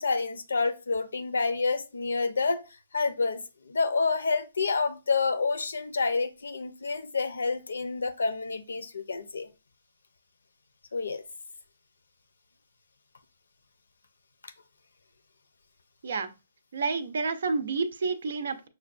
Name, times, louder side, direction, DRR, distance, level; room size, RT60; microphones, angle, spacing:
voice 1, 0.0-2.6 2.9-9.5 10.9-11.2, left 4 dB, 90° left, 10 dB, 0.6 m, -28 dB
voice 2, 16.7-18.7, right 4 dB, 70° right, 11 dB, 0.5 m, -29 dB
5.6 x 2.2 x 2.5 m, 0.28 s
hypercardioid pair, 145°, 0 cm